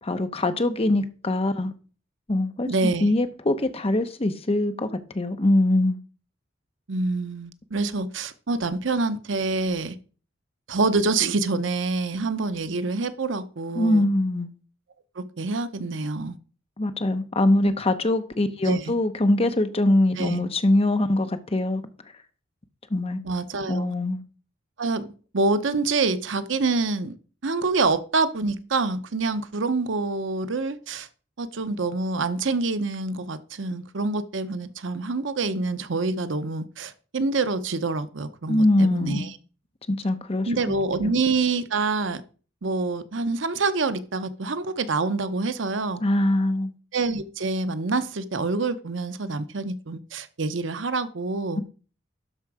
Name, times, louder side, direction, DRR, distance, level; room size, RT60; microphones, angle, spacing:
voice 1, 0.0-1.7 2.3-2.7 3.0-4.9 5.1-6.0 13.8-14.5 16.8-21.8 22.9-23.2 23.7-24.2 38.5-39.3 39.9-40.5 41.0-41.1 46.0-46.7 51.6-51.7, left 1 dB, 30° left, 0.8 m, -23 dB
voice 2, 2.6-3.1 6.9-10.0 10.7-14.0 15.2-16.4 17.6-17.7 18.6-18.9 20.2-20.4 23.2-23.9 24.8-27.2 27.4-31.1 31.4-39.4 40.5-42.2 42.6-46.0 46.9-51.6, right 3 dB, 70° right, 0.8 m, -26 dB
12.0 x 4.8 x 4.8 m
head